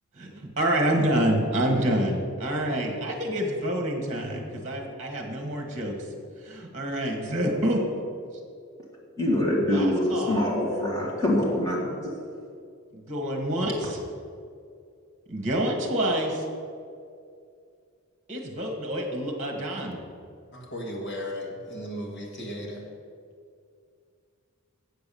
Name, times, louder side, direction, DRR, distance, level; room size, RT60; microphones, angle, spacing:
voice 1, 0.2-6.0 6.4-7.8 9.7-10.5 12.9-14.0 15.3-16.4 18.3-20.0, right 1 dB, 35° right, 2 dB, 1.4 m, -27 dB
voice 2, 9.2-11.8, left 1 dB, 15° left, -4 dB, 2.1 m, -24 dB
voice 3, 20.5-22.8, equal, 50° left, 0 dB, 1.6 m, -35 dB
8.1 x 6.9 x 6.8 m, 2.3 s
head